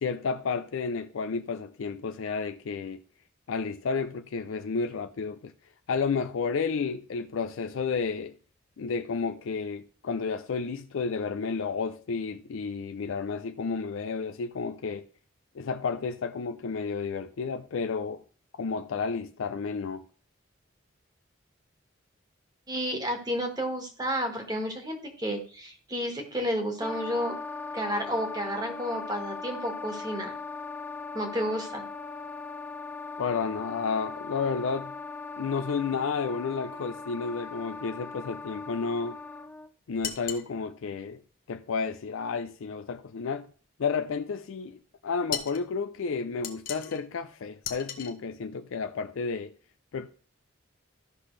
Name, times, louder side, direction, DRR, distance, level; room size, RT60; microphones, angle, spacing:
voice 1, 0.0-3.0 3.5-5.5 5.9-8.3 8.8-15.0 15.6-18.2 18.6-20.1 33.2-34.9 35.4-39.2 39.9-41.2 41.5-43.5 43.8-44.8 45.0-49.5 49.9-50.1, left 5 dB, 80° left, 0.4 m, -31 dB
voice 2, 22.7-27.3 27.7-30.3 31.1-31.8, equal, 20° right, 1.5 m, -31 dB
Wind instrument woodwind instrument, 26.8-39.7, left 4 dB, 10° left, 0.4 m, -39 dB
sound 1, 40.0-40.5 45.3-45.6 46.4-47.0 47.6-48.1, left 8 dB, 45° left, 0.9 m, -35 dB
13.5 x 5.9 x 3.2 m
head